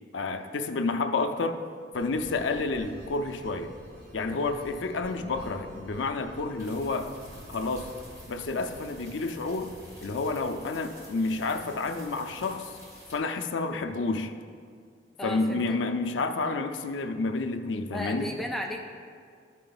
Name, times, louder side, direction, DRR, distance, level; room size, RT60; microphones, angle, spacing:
voice 1, 0.1-1.6 1.9-3.7 4.1-7.1 7.5-7.9 8.3-9.7 10.0-12.7 13.1-14.3 15.2-18.3, left 3 dB, 85° left, 6 dB, 0.5 m, -30 dB
sound 1, 1.9-11.2, equal, 60° right, 1.4 m, -49 dB
sound 2, 6.6-13.2, equal, 20° right, 1.8 m, -49 dB
voice 2, 15.2-15.8 17.9-18.8, equal, ahead, 1 dB, 0.5 m, -34 dB
12.5 x 4.5 x 3.9 m, 2.2 s
head